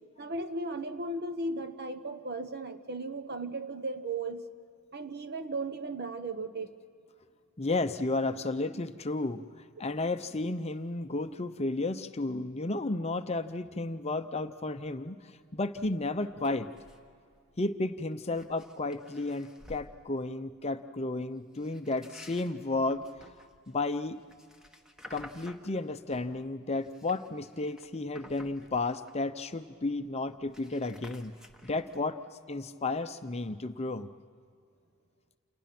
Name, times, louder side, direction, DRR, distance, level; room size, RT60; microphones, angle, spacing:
voice 1, 0.2-4.4 4.9-6.7, right 2 dB, 45° right, 10 dB, 1.2 m, -36 dB
voice 2, 7.6-9.4 9.8-15.2 15.5-16.7 17.6-23.0 23.7-24.2 25.1-31.4 31.6-32.2 32.5-34.1, left 2 dB, 30° left, 9 dB, 0.7 m, -32 dB
sound 1, 15.7-15.9 16.3-17.1 17.3-17.6 18.1-19.9 21.5-26.3 26.7-29.4 29.7-29.8 30.0-32.0, left 1 dB, 5° right, 1.3 m, -53 dB
29.0 x 28.5 x 6.0 m, 2.3 s
head